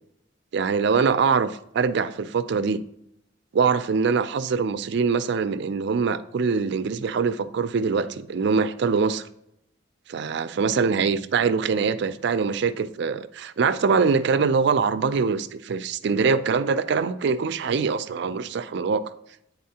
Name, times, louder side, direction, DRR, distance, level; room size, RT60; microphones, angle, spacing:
voice 1, 0.5-2.8 3.5-9.2 10.1-19.0, right 5 dB, 65° right, 0.4 m, -23 dB
9.5 x 4.0 x 2.8 m
head